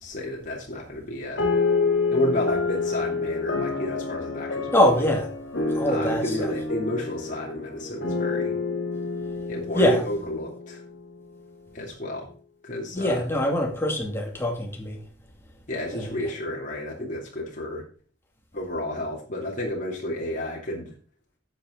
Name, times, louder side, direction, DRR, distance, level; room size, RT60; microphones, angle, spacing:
voice 1, 0.0-1.5 2.1-5.2 5.9-8.5 9.5-10.8 11.7-12.3 12.6-13.2 15.7-17.8 18.5-20.9, left 1 dB, 45° left, -3 dB, 2.8 m, -31 dB
sound 1, 1.4-11.1, left 4 dB, 75° left, 2.1 m, -28 dB
voice 2, 4.7-5.3 5.8-6.5 9.7-10.0 12.9-15.0 15.9-16.1, left 1 dB, 15° left, 1 dB, 2.4 m, -23 dB
11.0 x 7.9 x 3.8 m, 0.40 s
head